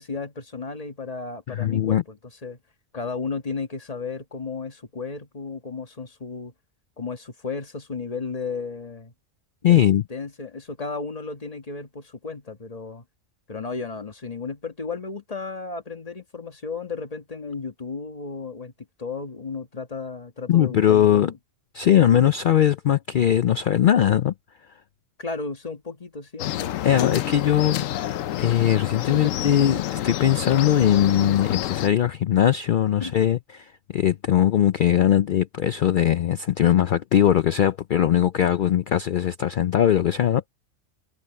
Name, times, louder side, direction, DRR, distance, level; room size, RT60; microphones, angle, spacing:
voice 1, 0.0-2.6 2.9-6.5 7.0-9.1 10.1-13.0 13.5-18.7 19.0-21.4 25.2-26.8 29.1-29.4 33.0-33.1, left 4 dB, 30° left, 1.4 m, -34 dB
voice 2, 1.5-2.0 9.6-10.0 20.5-21.3 21.7-24.3 26.8-27.8 28.4-40.4, left 10 dB, 65° left, 0.5 m, -20 dB
sound 1, 26.4-31.9, left 13 dB, 90° left, 1.0 m, -28 dB
omnidirectional pair, 1.3 m